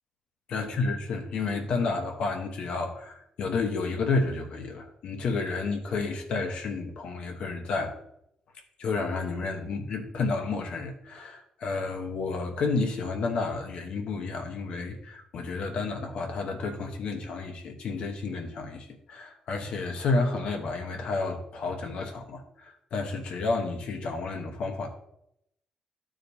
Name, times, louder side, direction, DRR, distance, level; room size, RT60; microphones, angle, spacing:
voice 1, 0.5-7.9 8.8-24.9, left 3 dB, 65° left, 3 dB, 1.0 m, -31 dB
12.5 x 5.0 x 2.7 m, 0.76 s
cardioid pair, 155°, 2 cm